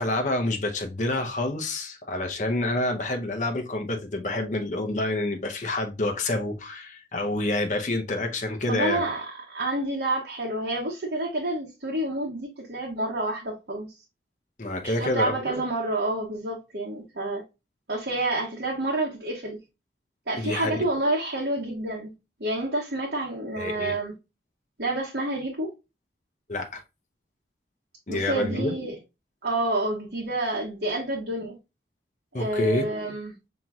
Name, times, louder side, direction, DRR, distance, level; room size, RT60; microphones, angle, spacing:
voice 1, 0.0-9.0 14.6-15.4 20.4-20.9 23.6-24.0 26.5-26.8 28.1-28.7 32.3-32.8, left 2 dB, 40° left, 0.7 m, -28 dB
voice 2, 8.7-13.9 14.8-17.4 17.9-19.6 20.3-22.1 22.4-24.1 24.8-25.7 28.1-28.9 29.4-31.6 32.3-33.3, right 2 dB, 65° right, 1.1 m, -29 dB
5.7 x 2.9 x 2.3 m
head